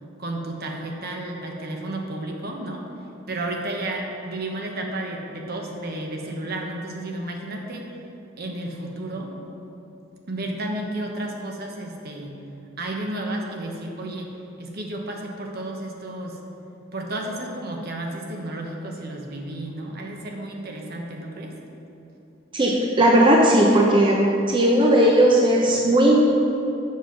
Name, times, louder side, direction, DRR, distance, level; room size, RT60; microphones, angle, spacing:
voice 1, 0.2-2.8 3.3-7.9 8.4-9.3 10.3-12.4 12.8-14.3 14.6-16.4 16.9-21.6, right 1 dB, 50° right, 1 dB, 1.0 m, -32 dB
voice 2, 22.5-24.2 24.5-26.2, right 1 dB, 25° right, -1 dB, 0.6 m, -17 dB
7.5 x 5.4 x 5.9 m, 2.9 s
head